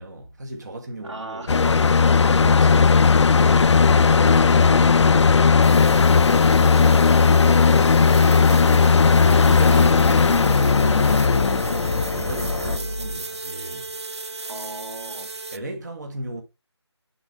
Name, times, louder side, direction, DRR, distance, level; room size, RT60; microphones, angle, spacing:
voice 1, 0.0-1.5 2.2-6.1 6.5-9.1 9.4-13.9 15.5-16.4, right 2 dB, 40° right, 1.2 m, -36 dB
voice 2, 1.0-2.1 14.4-15.3, right 2 dB, 90° right, 2.0 m, -37 dB
sound 1, 1.5-12.8, left 5 dB, 80° left, 0.4 m, -16 dB
sound 2, 5.6-15.6, right 3 dB, 70° right, 0.7 m, -34 dB
Mechanical fan, 11.1-13.2, equal, 10° right, 0.7 m, -34 dB
8.1 x 3.9 x 3.4 m
figure-of-eight pair, 175°, 15 cm